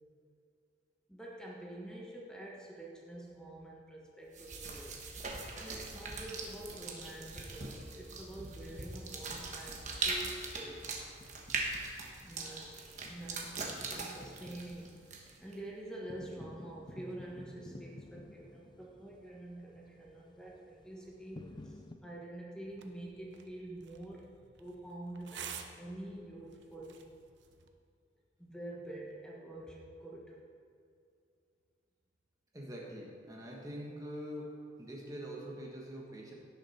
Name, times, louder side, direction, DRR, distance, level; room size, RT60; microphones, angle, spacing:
voice 1, 1.1-10.8 12.2-15.0 15.4-24.2 24.6-27.0 28.4-30.4, right 1 dB, 5° left, -3 dB, 1.3 m, -47 dB
sound 1, 4.3-15.5, right 3 dB, 40° right, 1.2 m, -41 dB
sound 2, 8.8-9.9 10.3-10.4 11.2-22.0, left 2 dB, 25° left, 0.4 m, -54 dB
sound 3, 22.7-27.7, right 8 dB, 75° right, 0.8 m, -51 dB
voice 2, 32.5-34.5 34.8-36.3, equal, 20° right, -2 dB, 1.3 m, -44 dB
16.5 x 6.7 x 4.3 m, 2.4 s
head